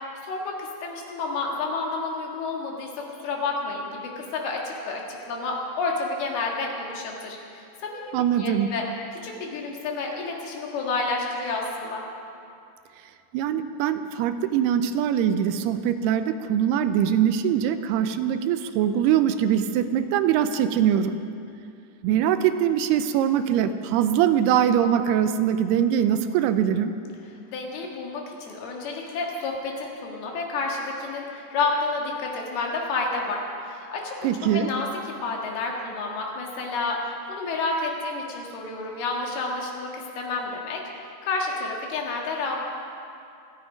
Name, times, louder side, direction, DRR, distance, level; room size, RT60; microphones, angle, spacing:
voice 1, 0.2-8.8 9.2-12.0 27.5-34.3 34.5-34.9 35.2-40.8 41.2-42.7, left 3 dB, 70° left, 0 dB, 3.6 m, -30 dB
voice 2, 8.1-8.8 13.3-21.2 22.0-26.9 34.2-34.7, right 9 dB, 80° right, 10 dB, 2.5 m, -22 dB
26.5 x 8.9 x 5.1 m, 2.5 s
omnidirectional pair, 4.8 m